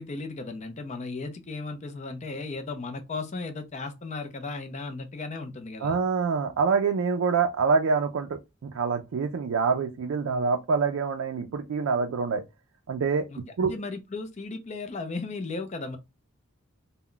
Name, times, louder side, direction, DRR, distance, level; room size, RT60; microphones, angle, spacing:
voice 1, 0.0-6.0 13.3-13.4 13.7-16.0, left 3 dB, 35° left, 0.4 m, -35 dB
voice 2, 5.8-12.4 12.9-13.7, right 5 dB, 65° right, 0.3 m, -26 dB
2.2 x 2.1 x 3.7 m
head